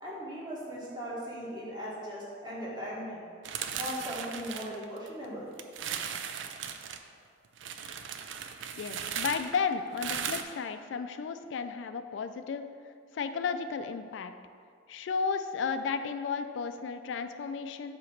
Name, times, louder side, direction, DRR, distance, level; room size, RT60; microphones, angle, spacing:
voice 1, 0.0-3.2 3.8-5.5, equal, 20° right, -7 dB, 1.6 m, -38 dB
sound 1, 3.4-5.2 5.6-7.0 7.6-10.4, right 8 dB, 85° right, 0.4 m, -37 dB
voice 2, 8.7-12.7 13.1-14.3 14.9-18.0, left 5 dB, 80° left, 10 dB, 0.3 m, -33 dB
7.7 x 3.0 x 5.8 m, 2.2 s
head